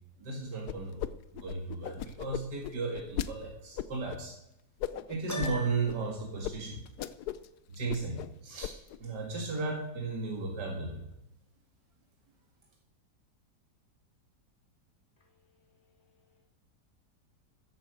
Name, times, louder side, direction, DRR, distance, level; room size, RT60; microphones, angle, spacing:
voice 1, 0.2-1.0 1.3-4.3 5.1-6.8 7.7-8.7 9.0-11.0, right 3 dB, 85° right, 2.5 m, -35 dB
sound 1, 0.7-1.1 1.4-3.3 3.8-4.2 4.8-5.5 5.9-6.0 6.4-6.5 6.9-7.5 7.7-8.3 8.6-9.0, left 11 dB, 75° left, 1.2 m, -36 dB
Piano, 5.3-6.1, left 1 dB, 10° left, 1.4 m, -39 dB
voice 2, 15.2-16.4, left 4 dB, 40° left, 2.8 m, -71 dB
14.5 x 8.5 x 6.4 m
omnidirectional pair, 1.8 m